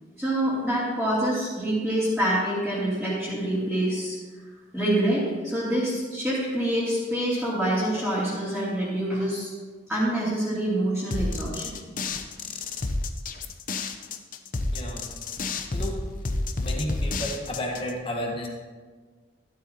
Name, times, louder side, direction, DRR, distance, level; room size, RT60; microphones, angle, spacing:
voice 1, 0.2-4.2 4.7-9.5 9.9-11.7, right 1 dB, ahead, -11 dB, 2.7 m, -26 dB
sound 1, 11.1-17.9, left 2 dB, 50° left, 0.7 m, -30 dB
voice 2, 14.7-15.1 15.7-16.3 16.6-18.5, left 1 dB, 30° left, 0 dB, 1.3 m, -32 dB
12.5 x 12.5 x 2.9 m, 1.4 s
head